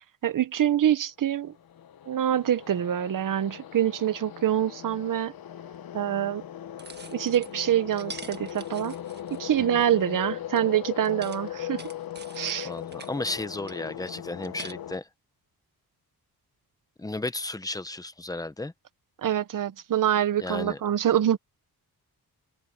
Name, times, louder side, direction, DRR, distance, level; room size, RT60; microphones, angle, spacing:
voice 1, 0.2-1.5 2.1-5.3 5.9-6.4 7.1-8.9 9.3-11.8 12.4-12.7 19.2-21.4, right 10 dB, 55° right, 0.9 m, -25 dB
sound 1, 1.4-15.0, left 11 dB, 65° left, 1.0 m, -39 dB
sound 2, 5.7-5.8 6.8-7.5 7.9-9.8 10.6-10.7 11.0-13.1 13.7-14.7, right 3 dB, 25° right, 1.6 m, -45 dB
voice 2, 12.6-15.1 17.0-18.7 20.4-20.8, left 2 dB, 10° left, 0.8 m, -33 dB
open air
wide cardioid pair, 140°, 38 cm